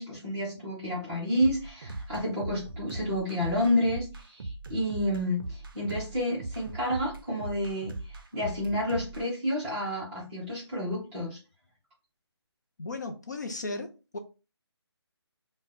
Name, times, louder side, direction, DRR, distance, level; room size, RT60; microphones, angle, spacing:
voice 1, 0.0-11.4, left 1 dB, 5° right, 0.6 m, -30 dB
sound 1, 1.4-9.3, right 2 dB, 50° right, 0.4 m, -39 dB
voice 2, 12.8-14.2, left 3 dB, 40° left, 0.4 m, -36 dB
2.5 x 2.0 x 3.8 m
hypercardioid pair, 170°, 14 cm